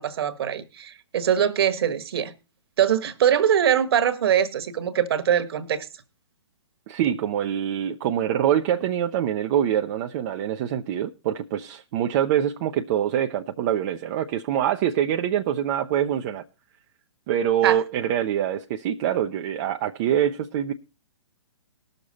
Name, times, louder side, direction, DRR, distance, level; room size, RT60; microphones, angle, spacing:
voice 1, 0.0-2.3 2.8-5.9 17.6-17.8, right 9 dB, 55° right, 1.3 m, -22 dB
voice 2, 6.9-16.4 17.3-20.7, right 10 dB, 40° right, 0.7 m, -25 dB
19.0 x 6.7 x 4.1 m
figure-of-eight pair, 125°, 15 cm